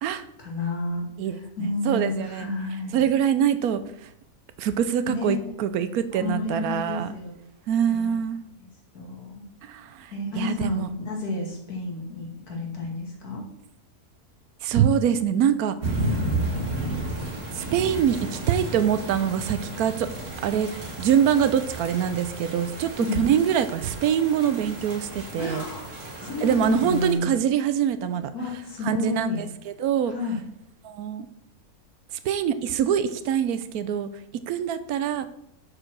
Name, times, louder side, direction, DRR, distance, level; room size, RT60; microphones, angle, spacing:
voice 1, 0.4-1.1 1.4-3.1 5.1-5.5 6.1-7.4 7.9-8.2 8.6-9.4 10.1-13.4 23.0-23.3 25.4-27.3 28.3-29.4 30.1-30.4, left 2 dB, 80° left, -1 dB, 2.6 m, -31 dB
voice 2, 1.2-2.5 2.9-4.1 4.6-7.1 7.7-8.4 9.6-10.9 14.6-16.1 17.5-20.1 20.4-20.7 21.0-25.6 26.4-28.3 28.8-30.1 30.8-31.3 32.2-34.1 34.5-35.3, right 9 dB, 75° right, 12 dB, 1.1 m, -24 dB
sound 1, 15.8-27.1, right 1 dB, 55° right, 2.0 m, -33 dB
6.5 x 4.9 x 6.0 m, 0.78 s
omnidirectional pair, 1.6 m